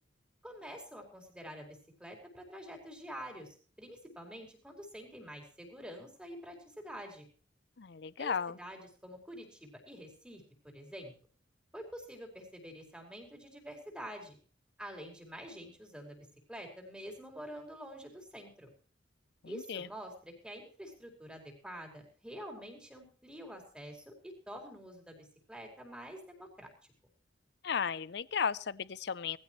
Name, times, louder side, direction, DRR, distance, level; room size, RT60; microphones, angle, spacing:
voice 1, 0.4-7.3 8.2-11.1 11.7-14.4 14.8-18.7 19.4-26.7, equal, 5° right, 2 dB, 4.9 m, -47 dB
voice 2, 7.8-8.6 19.4-19.9 27.6-29.4, left 6 dB, 60° left, 19 dB, 0.6 m, -35 dB
20.5 x 15.5 x 3.2 m, 0.42 s
head